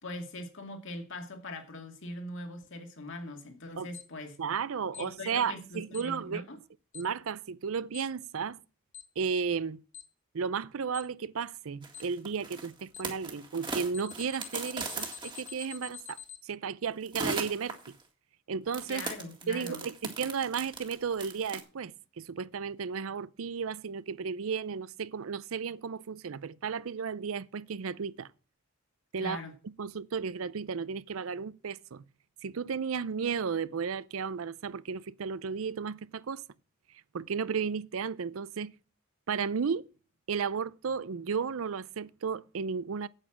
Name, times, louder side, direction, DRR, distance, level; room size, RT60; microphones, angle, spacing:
voice 1, 0.0-4.4 5.0-6.6 18.9-19.8 29.2-29.5, left 2 dB, 65° left, 2.3 m, -41 dB
Alarm, 3.9-4.0 4.9-5.0 5.9-6.0 6.9-7.0 7.9-8.0 8.9-9.0 9.9-10.0 10.9-11.0 11.9-12.0 12.9-13.0 13.9-16.4, left 10 dB, 35° left, 1.7 m, -45 dB
voice 2, 4.4-6.5 6.9-8.6 9.2-9.8 10.3-18.0 18.5-19.1 19.5-28.3 29.1-29.4 29.8-32.0 32.4-36.4 37.1-38.7 39.3-39.9 40.3-43.1, right 6 dB, 80° right, 0.5 m, -34 dB
sound 1, 11.8-15.9 17.1-18.0 18.7-21.6, right 3 dB, 25° right, 2.0 m, -38 dB
8.8 x 8.5 x 6.1 m
head